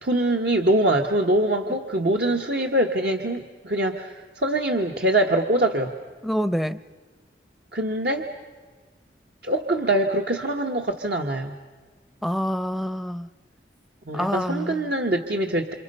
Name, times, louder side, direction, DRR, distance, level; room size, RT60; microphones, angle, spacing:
voice 1, 0.0-5.9 7.7-8.3 9.4-11.5 14.1-15.7, right 1 dB, 65° right, 3 dB, 1.3 m, -23 dB
voice 2, 6.2-6.8 12.2-13.3 14.1-14.8, equal, ahead, 14 dB, 0.6 m, -26 dB
29.0 x 27.0 x 5.5 m, 1.4 s
head